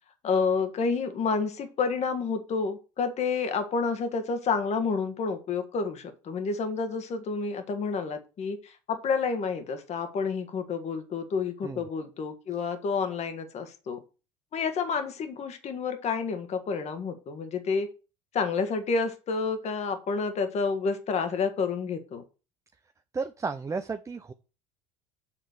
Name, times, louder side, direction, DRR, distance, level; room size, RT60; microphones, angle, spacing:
voice 1, 0.2-14.0 14.5-17.9 18.3-22.2, left 5 dB, 45° left, 8 dB, 1.5 m, -29 dB
voice 2, 23.1-24.3, right 4 dB, 20° right, 9 dB, 0.6 m, -33 dB
7.4 x 3.9 x 6.4 m, 0.33 s
hypercardioid pair, 70°, 16 cm